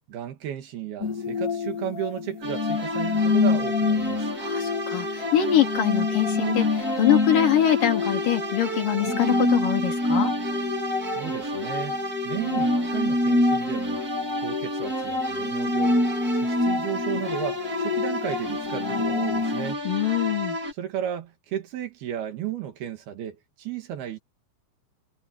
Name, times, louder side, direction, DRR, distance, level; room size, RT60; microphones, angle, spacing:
voice 1, 0.1-4.3 11.2-14.0 14.4-16.0 16.3-19.8 20.7-24.2, right 10 dB, 85° right, 4.0 m, -34 dB
sound 1, 1.0-19.7, left 3 dB, 30° left, 1.7 m, -26 dB
sound 2, 2.4-20.7, right 1 dB, 25° right, 4.5 m, -32 dB
voice 2, 4.4-10.3 19.8-20.6, left 11 dB, 60° left, 4.9 m, -24 dB
omnidirectional pair, 4.3 m